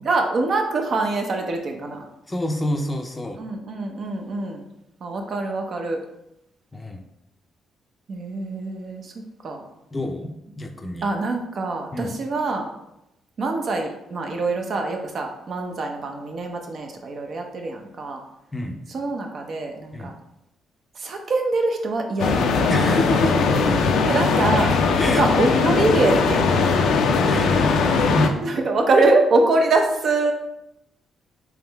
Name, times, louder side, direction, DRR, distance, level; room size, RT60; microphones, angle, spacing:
voice 1, 0.0-2.1 3.4-4.6 5.0-6.0 8.1-9.1 9.4-9.7 11.0-12.7 13.4-18.2 18.9-20.1 20.9-22.6 24.1-24.7 25.2-26.7 28.4-30.3, right 3 dB, 55° right, 3 dB, 0.6 m, -24 dB
voice 2, 2.3-3.4 6.7-7.0 9.9-10.3 10.6-11.1 11.9-12.1 18.5-18.8 19.9-20.1 22.7-23.8 25.0-25.2 25.6-25.7 27.3-27.8 28.1-28.4, left 1 dB, 20° left, 5 dB, 0.5 m, -27 dB
sound 1, 22.2-28.3, left 4 dB, 80° left, 0.5 m, -19 dB
3.6 x 3.1 x 3.4 m, 0.85 s
cardioid pair, 90°, 0 cm